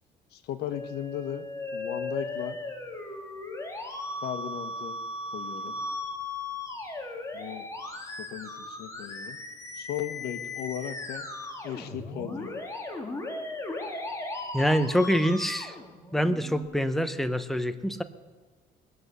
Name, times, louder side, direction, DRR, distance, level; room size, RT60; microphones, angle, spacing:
voice 1, 0.3-1.5 1.7-2.6 4.2-5.0 5.3-5.8 7.3-7.7 8.0-9.4 9.7-11.3 11.6-12.6, left 10 dB, 75° left, 9 dB, 1.3 m, -36 dB
Musical instrument, 0.7-16.6, left 2 dB, 20° left, 2.3 m, -37 dB
voice 2, 14.5-15.8 16.1-18.0, equal, ahead, 10 dB, 0.9 m, -25 dB
21.0 x 7.9 x 6.9 m, 1.4 s
cardioid pair, 110°, 17 cm